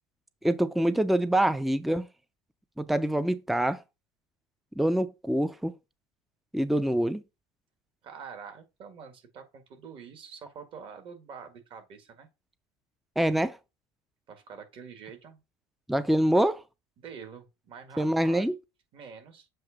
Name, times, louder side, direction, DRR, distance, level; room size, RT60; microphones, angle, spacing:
voice 1, 0.4-2.1 2.8-3.8 4.8-5.7 6.5-7.2 13.2-13.6 15.9-16.6 18.0-18.6, right 1 dB, ahead, 0.4 m, -25 dB
voice 2, 8.0-12.3 14.3-15.4 17.0-18.5 18.9-19.5, right 6 dB, 50° right, 1.8 m, -46 dB
7.7 x 2.6 x 5.1 m
supercardioid pair, 100°, 12 cm